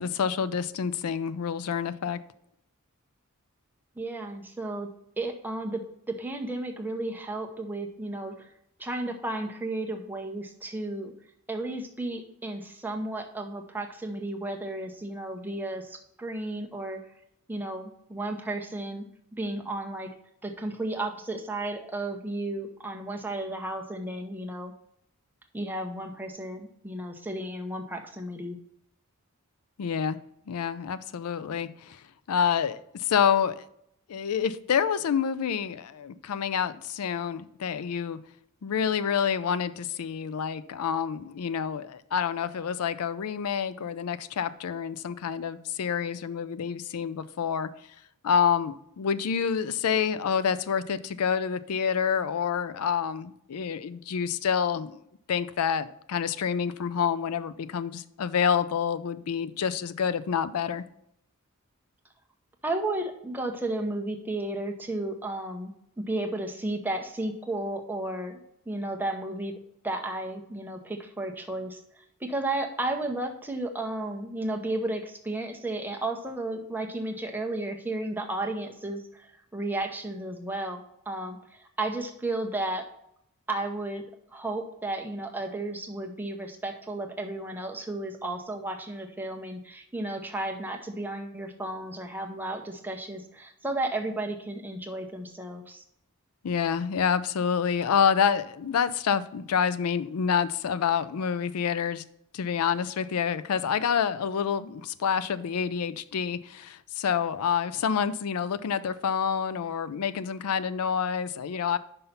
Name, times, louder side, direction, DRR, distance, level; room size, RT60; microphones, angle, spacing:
voice 1, 0.0-2.2 29.8-30.2 30.5-33.6 34.1-38.2 38.6-47.7 48.2-55.0 55.3-60.8 96.4-102.0 102.3-111.8, left 7 dB, 85° left, 15 dB, 0.4 m, -28 dB
voice 2, 4.0-4.9 5.2-8.5 8.8-11.1 11.5-17.0 17.5-19.0 19.4-20.1 20.4-24.7 25.5-28.6 62.6-65.7 66.1-68.4 68.7-69.5 69.8-82.9 83.5-84.0 84.3-95.8, right 2 dB, 10° right, 3 dB, 0.8 m, -33 dB
5.6 x 5.4 x 5.7 m, 0.75 s
head